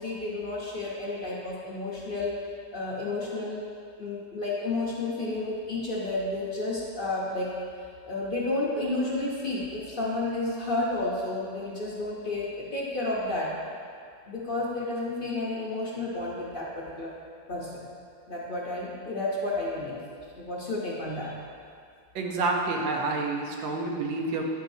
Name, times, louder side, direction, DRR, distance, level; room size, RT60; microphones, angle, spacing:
voice 1, 0.0-2.4 2.7-3.6 4.0-7.5 8.0-13.5 14.3-17.1 17.5-17.8 18.3-20.0 20.4-21.4, left 2 dB, 45° left, -5 dB, 0.7 m, -31 dB
voice 2, 22.2-24.5, right 3 dB, 80° right, 0 dB, 1.6 m, -28 dB
9.8 x 7.3 x 2.7 m, 2.3 s
omnidirectional pair, 2.0 m